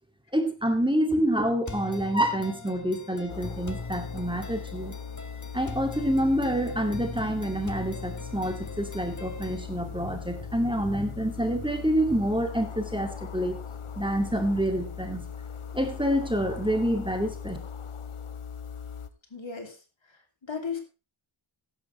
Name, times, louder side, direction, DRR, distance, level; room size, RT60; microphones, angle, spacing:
voice 1, 0.3-4.9 5.5-13.6 14.0-15.3 15.7-17.6, equal, 10° right, 4 dB, 2.3 m, -27 dB
sound 1, 1.7-9.7, left 3 dB, 35° left, 1.5 m, -41 dB
sound 2, 3.3-19.1, left 7 dB, 90° left, 0.9 m, -39 dB
voice 2, 19.3-19.8 20.1-20.8, left 6 dB, 65° left, 3 dB, 3.0 m, -36 dB
14.5 x 11.0 x 3.3 m, 0.31 s
wide cardioid pair, 50°, 49 cm